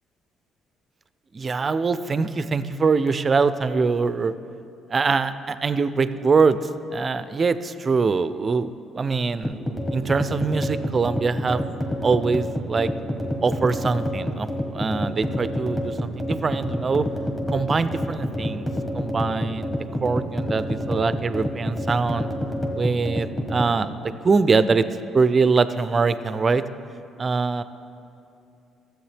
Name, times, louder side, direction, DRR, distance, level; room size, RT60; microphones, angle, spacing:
voice 1, 1.3-4.3 4.9-6.6 6.9-9.6 9.9-11.7 12.0-12.9 13.4-17.0 17.5-18.7 18.9-22.3 22.7-23.9 24.2-24.8 25.1-26.6 27.2-27.6, right 4 dB, 35° right, 13 dB, 0.4 m, -23 dB
sound 1, 9.4-23.7, equal, 10° left, 1.3 m, -28 dB
13.5 x 7.6 x 3.4 m, 2.6 s
supercardioid pair, 80°, 0 cm